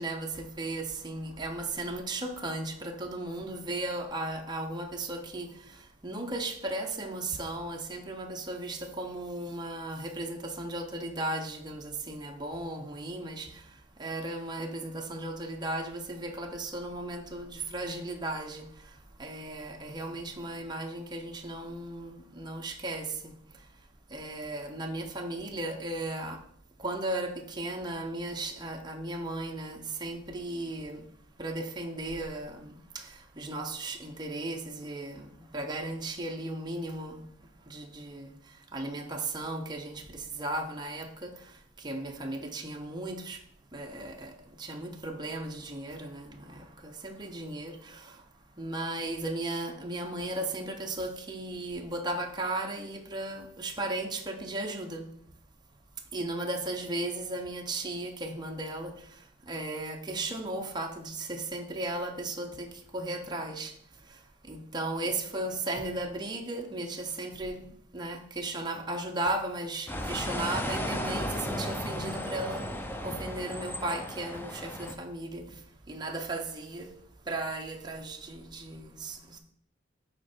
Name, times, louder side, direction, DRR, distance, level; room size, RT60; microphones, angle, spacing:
voice 1, 0.0-5.5 6.0-13.5 14.0-18.7 19.2-23.3 24.1-26.4 26.8-31.0 31.4-33.1 33.4-37.2 37.7-38.3 38.7-41.4 41.8-43.4 43.7-48.1 48.6-55.1 56.1-59.0 59.5-63.7 64.5-67.6 67.9-72.6 73.0-75.5 75.9-76.9 77.3-79.4, right 2 dB, 25° right, 0.8 m, -36 dB
sound 1, 69.9-74.9, left 1 dB, 10° left, 0.6 m, -34 dB
8.1 x 4.4 x 4.4 m
head